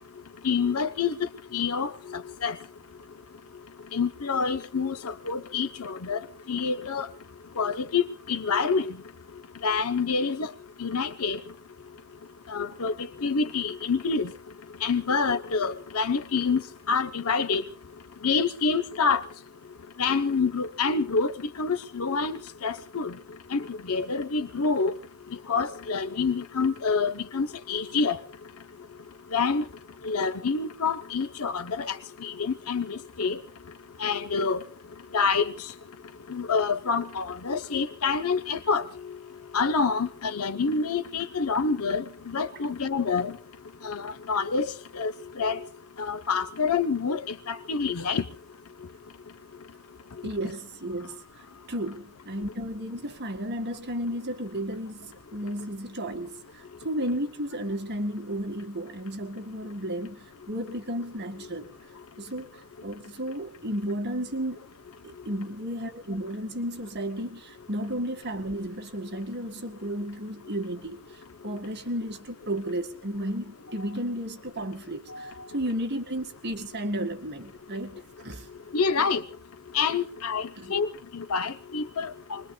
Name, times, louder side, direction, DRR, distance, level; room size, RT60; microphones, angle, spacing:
voice 1, 0.4-2.6 3.9-7.1 7.6-8.9 9.6-10.5 10.8-11.4 12.5-14.3 14.8-16.6 16.9-17.6 18.2-19.2 20.0-23.1 23.5-25.0 25.5-28.2 29.3-29.6 30.0-33.4 34.0-34.6 35.1-35.7 36.3-38.9 39.5-43.4 43.8-45.1 45.4-45.6 46.0-48.2 75.1-75.3 78.7-79.2 79.7-82.4, left 5 dB, 75° left, 0.8 m, -27 dB
voice 2, 50.2-51.2 51.7-61.7 62.2-64.6 65.0-78.5 80.6-80.7, right 1 dB, 50° right, 1.9 m, -33 dB
27.5 x 21.5 x 2.3 m
head